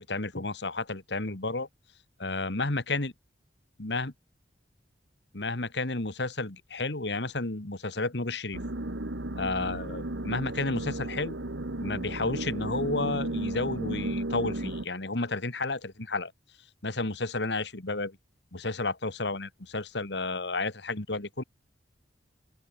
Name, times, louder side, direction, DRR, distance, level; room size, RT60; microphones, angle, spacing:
voice 1, 0.0-1.7 2.2-3.1 3.8-4.1 5.3-8.6 9.3-11.4 11.8-16.3 16.8-18.2 18.5-21.4, left 3 dB, 70° left, 2.0 m, -31 dB
sound 1, 8.5-14.8, right 1 dB, 85° right, 2.0 m, -34 dB
open air
head